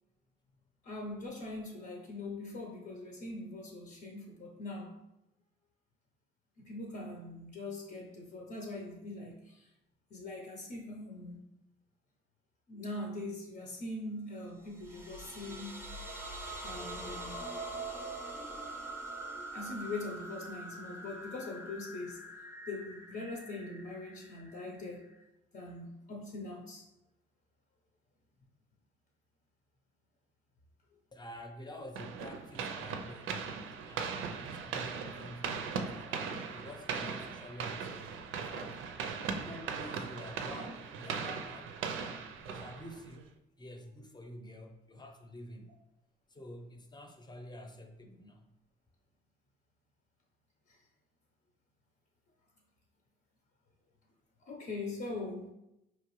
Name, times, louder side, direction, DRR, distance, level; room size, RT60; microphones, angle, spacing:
voice 1, 0.8-5.0 6.6-9.7 10.1-11.5 12.7-15.8 16.6-17.4 19.5-22.3 22.7-25.1 25.5-26.8 50.7-50.8 54.4-55.5, left 2 dB, 55° left, 0 dB, 0.8 m, -42 dB
sound 1, 14.6-25.2, right 2 dB, 10° right, 0.7 m, -44 dB
voice 2, 31.1-33.5 33.8-38.8 39.3-43.2 43.6-45.8 46.3-48.5, left 1 dB, 20° left, 4 dB, 0.7 m, -49 dB
sound 2, 32.0-43.2, right 6 dB, 85° right, 0.5 m, -39 dB
4.6 x 3.0 x 3.1 m, 0.87 s
cardioid pair, 90°, 20 cm